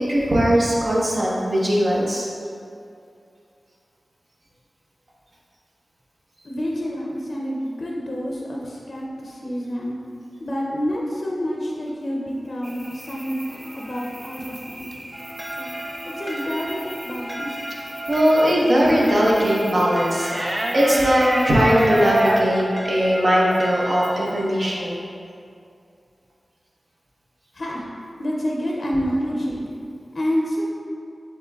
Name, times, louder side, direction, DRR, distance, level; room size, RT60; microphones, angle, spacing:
voice 1, 0.0-2.3 18.1-25.0, equal, 60° right, -5 dB, 1.0 m, -19 dB
voice 2, 6.4-10.0 10.4-14.9 15.6-15.7 16.2-17.6 27.5-27.9 28.2-29.7 30.1-30.6, equal, 60° left, -2 dB, 0.5 m, -28 dB
sound 1, 12.6-22.4, right 1 dB, 20° right, 0.4 m, -30 dB
sound 2, 15.1-24.5, right 1 dB, 5° left, 0.7 m, -34 dB
7.4 x 3.0 x 2.4 m, 2.4 s
cardioid pair, 50°, 0 cm